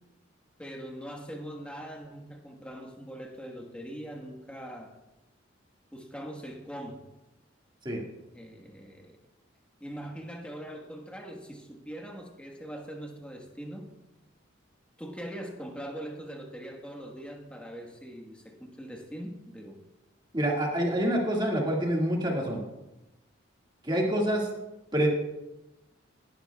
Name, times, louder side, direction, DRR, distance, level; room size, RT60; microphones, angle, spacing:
voice 1, 0.6-5.0 5.9-7.0 8.3-9.2 9.8-13.9 15.0-19.8, equal, 5° left, 1 dB, 1.3 m, -42 dB
voice 2, 20.3-22.6 23.8-24.5 24.9-25.1, right 1 dB, 20° right, -1 dB, 1.9 m, -26 dB
17.5 x 11.5 x 2.3 m, 0.99 s
head